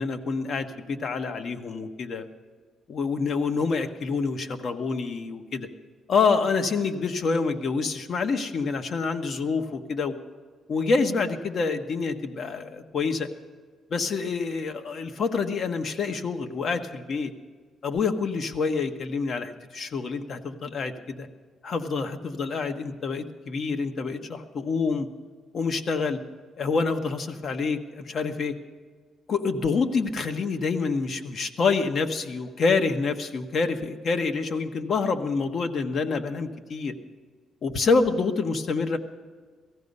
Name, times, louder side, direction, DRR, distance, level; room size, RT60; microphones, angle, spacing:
voice 1, 0.0-2.2 2.9-5.7 6.1-10.1 10.7-13.3 13.9-17.3 17.8-21.3 21.6-25.1 25.5-26.2 26.6-28.5 29.3-36.9 37.6-39.0, left 4 dB, 55° left, 7 dB, 1.2 m, -27 dB
17.5 x 14.5 x 5.4 m, 1.5 s
cardioid pair, 90°, 0 cm